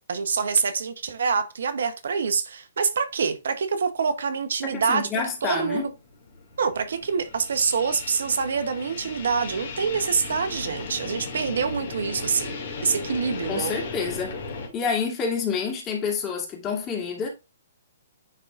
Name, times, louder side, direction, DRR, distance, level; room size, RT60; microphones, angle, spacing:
voice 1, 0.1-5.1 5.4-5.9 6.6-12.5 12.8-13.7, right 5 dB, 70° right, 0.9 m, -26 dB
sound 1, 4.3-4.4 5.0-14.7, left 4 dB, 55° left, 2.2 m, -36 dB
voice 2, 4.6-5.9 13.5-14.4 14.7-17.3, left 6 dB, 25° left, 2.4 m, -28 dB
10.0 x 3.8 x 2.5 m
hypercardioid pair, 130°, 0 cm